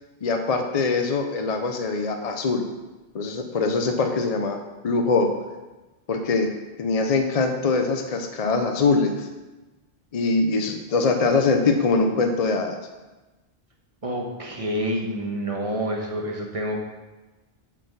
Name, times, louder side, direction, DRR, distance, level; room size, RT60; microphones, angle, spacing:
voice 1, 0.2-2.6 3.1-4.6 4.8-5.3 6.1-6.5 6.8-9.3 10.1-12.8, left 3 dB, 45° left, 5 dB, 0.6 m, -23 dB
voice 2, 14.0-16.8, equal, 35° right, 0 dB, 1.2 m, -28 dB
7.2 x 4.4 x 6.7 m, 1.2 s
omnidirectional pair, 1.0 m